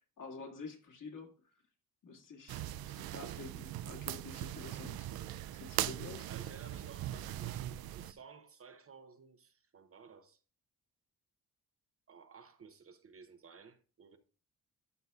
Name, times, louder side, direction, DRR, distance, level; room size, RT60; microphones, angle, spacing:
voice 1, 0.0-1.6 2.0-5.1 5.5-6.3, left 4 dB, 60° left, 2.2 m, -49 dB
sound 1, 2.5-8.1, right 13 dB, 80° right, 0.5 m, -40 dB
voice 2, 5.7-10.4 12.1-14.2, right 5 dB, 40° right, 0.8 m, -56 dB
12.5 x 5.4 x 2.3 m
cardioid pair, 120°, 36 cm